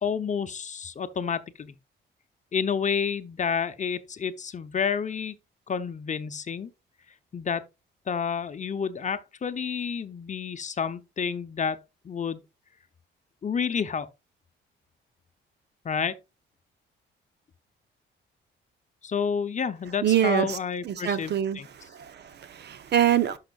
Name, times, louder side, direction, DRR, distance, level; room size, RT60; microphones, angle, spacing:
voice 1, 0.0-1.7 2.5-5.3 5.7-6.7 7.3-7.6 8.1-12.4 13.4-14.1 15.8-16.1 19.0-21.7, left 6 dB, 40° left, 0.8 m, -29 dB
voice 2, 20.0-20.6 20.8-23.4, right 10 dB, 60° right, 0.9 m, -25 dB
11.5 x 5.7 x 2.4 m
cardioid pair, 90°, 20 cm